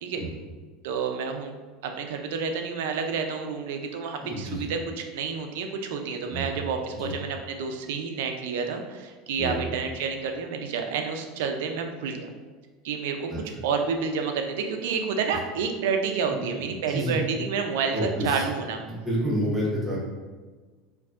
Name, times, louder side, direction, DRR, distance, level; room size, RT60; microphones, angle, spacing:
voice 1, 0.8-1.5 1.8-4.8 5.1-12.3 12.8-13.3 13.6-18.0 18.2-18.8, right 5 dB, 80° right, 5 dB, 0.5 m, -29 dB
voice 2, 4.2-4.7 6.3-6.6 6.9-7.1 9.4-9.7 13.3-13.4 16.3-16.4 16.9-17.2 17.9-18.5 18.9-20.0, equal, 5° right, -7 dB, 1.0 m, -29 dB
4.5 x 2.6 x 2.5 m, 1.4 s
supercardioid pair, 135°, 0 cm